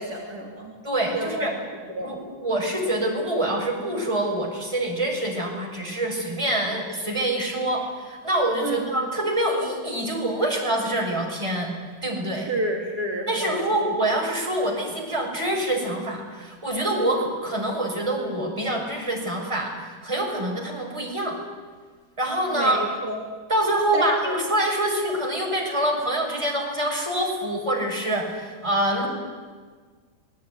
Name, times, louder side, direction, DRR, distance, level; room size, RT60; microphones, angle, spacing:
voice 1, 0.0-0.7 1.1-1.5 1.9-2.1 8.6-8.8 12.3-13.6 22.5-23.2 23.9-24.4, right 1 dB, 45° right, -3 dB, 4.0 m, -30 dB
voice 2, 0.8-1.5 2.0-11.7 12.0-12.5 13.3-21.4 22.2-22.8 23.5-29.1, right 1 dB, 15° right, -1 dB, 6.1 m, -25 dB
27.5 x 20.0 x 9.8 m, 1.5 s
omnidirectional pair, 2.2 m